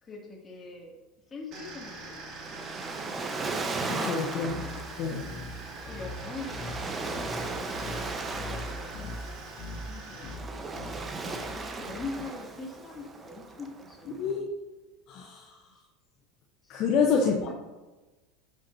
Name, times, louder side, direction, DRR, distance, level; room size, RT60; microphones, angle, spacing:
voice 1, 0.0-0.9 1.3-4.8 5.9-14.5 16.6-16.8 17.2-17.5, left 3 dB, 25° left, -1 dB, 2.5 m, -44 dB
sound 1, 1.5-10.3, right 2 dB, 50° right, 2.5 m, -44 dB
Waves surf, 1.9-14.3, right 3 dB, 25° right, 1.1 m, -37 dB
voice 2, 3.9-4.6 5.0-5.2 14.1-14.5 15.1-15.6 16.7-17.5, left 5 dB, 50° left, 1 dB, 1.0 m, -27 dB
sound 2, 4.4-12.4, left 2 dB, 70° left, 1.5 m, -42 dB
11.0 x 6.0 x 2.8 m, 1.2 s
hypercardioid pair, 90°, 0 cm